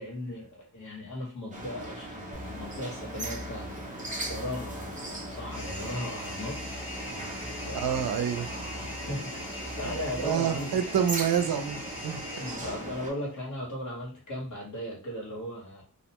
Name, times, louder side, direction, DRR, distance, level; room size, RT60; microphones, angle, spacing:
voice 1, 0.0-6.6 7.6-8.2 8.8-9.4 9.8-10.8 12.4-15.8, left 1 dB, 55° left, 1.3 m, -37 dB
sound 1, 1.5-13.1, right 1 dB, 20° right, 0.6 m, -39 dB
sound 2, 2.3-10.3, left 2 dB, 15° left, 0.8 m, -43 dB
sound 3, 5.5-13.2, left 1 dB, 35° left, 1.1 m, -42 dB
voice 2, 7.7-8.7 9.8-12.5, right 8 dB, 80° right, 0.5 m, -29 dB
2.4 x 2.2 x 2.9 m
wide cardioid pair, 135°, 36 cm